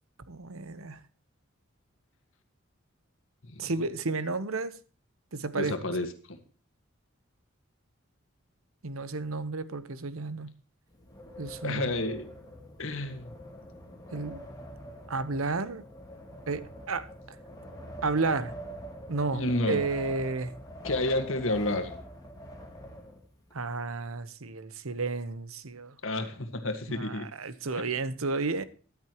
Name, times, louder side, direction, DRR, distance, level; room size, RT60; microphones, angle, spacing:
voice 1, 0.3-1.0 3.6-4.7 5.3-5.9 8.8-10.5 11.4-11.9 14.1-14.4 15.1-15.8 16.5-17.4 18.0-18.5 19.1-20.5 23.5-26.0 26.9-28.6, right 3 dB, 90° right, 1.0 m, -32 dB
voice 2, 5.5-6.4 11.6-12.3 12.8-13.3 19.3-19.8 20.8-21.9 26.0-27.3, left 2 dB, 70° left, 1.7 m, -30 dB
Wind, 10.9-23.5, equal, 15° left, 2.8 m, -44 dB
14.0 x 11.5 x 3.0 m
head